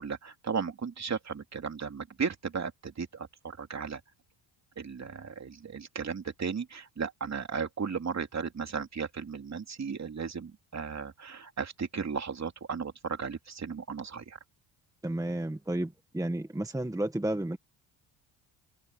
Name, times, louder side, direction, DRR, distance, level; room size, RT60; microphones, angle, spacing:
voice 1, 0.0-4.0 4.8-14.4, right 6 dB, 35° right, 3.2 m, -35 dB
voice 2, 15.0-17.6, right 1 dB, 5° right, 1.6 m, -32 dB
cardioid pair, 90°, 47 cm